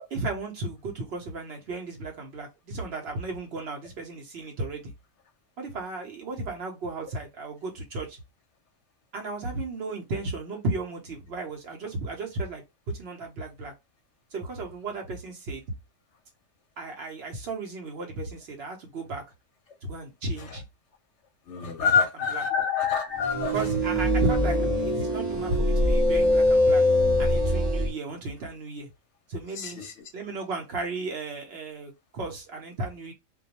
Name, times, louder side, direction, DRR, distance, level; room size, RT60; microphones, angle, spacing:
voice 1, 0.1-4.9 5.6-8.2 9.1-13.7 14.3-15.6 16.8-19.2 19.8-20.6 21.8-22.4 23.5-26.8 27.2-28.9 29.3-29.8 30.1-33.1, right 2 dB, 60° right, 0.8 m, -34 dB
voice 2, 21.5-23.5 29.6-29.7, left 6 dB, 65° left, 0.8 m, -25 dB
sound 1, 23.2-27.9, left 1 dB, 30° right, 0.5 m, -23 dB
2.3 x 2.2 x 2.7 m
omnidirectional pair, 1.4 m